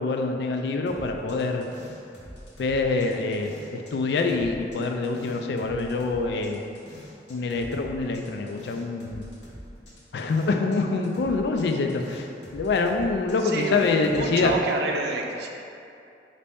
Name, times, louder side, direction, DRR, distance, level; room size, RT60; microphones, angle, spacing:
voice 1, 0.0-1.7 2.6-6.6 7.3-9.3 10.1-12.3 12.5-14.5, left 3 dB, 65° left, 4 dB, 0.3 m, -25 dB
sound 1, 0.9-3.9 4.2-10.8 11.0-14.6, equal, 80° left, 0.9 m, -45 dB
voice 2, 13.4-15.5, right 2 dB, 60° right, 1 dB, 0.4 m, -28 dB
4.1 x 2.7 x 3.5 m, 2.6 s
head